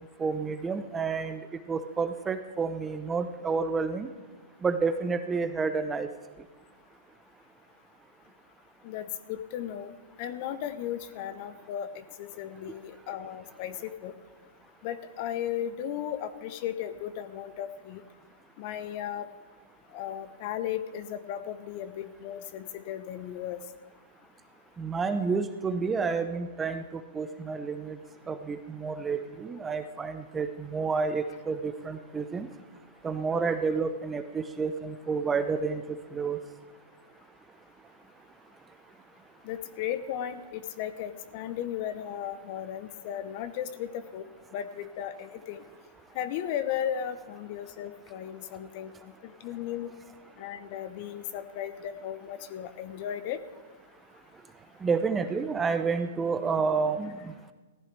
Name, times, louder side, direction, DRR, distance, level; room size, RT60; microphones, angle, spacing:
voice 1, 0.2-4.1 4.6-6.1 24.8-28.0 28.3-32.5 33.0-36.4 54.8-57.3, right 5 dB, 15° right, 10 dB, 0.8 m, -30 dB
voice 2, 8.8-9.9 10.2-14.1 14.8-18.0 18.6-19.3 19.9-23.6 39.4-44.3 44.5-45.6 46.1-49.9 50.4-53.4, left 10 dB, 45° left, 12 dB, 1.0 m, -35 dB
16.0 x 14.5 x 3.4 m, 1.3 s
hypercardioid pair, 120°, 0 cm